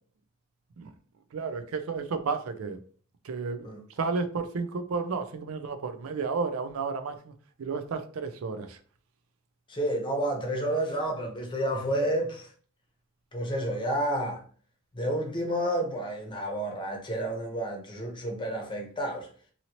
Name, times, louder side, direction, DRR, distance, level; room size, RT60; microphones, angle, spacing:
voice 1, 1.3-2.8 3.2-3.6 4.0-7.3 7.6-8.8, right 4 dB, 80° right, 0.4 m, -32 dB
voice 2, 9.7-12.5 13.3-14.4 14.9-19.3, right 1 dB, 25° left, 0.8 m, -30 dB
2.8 x 2.7 x 2.9 m
head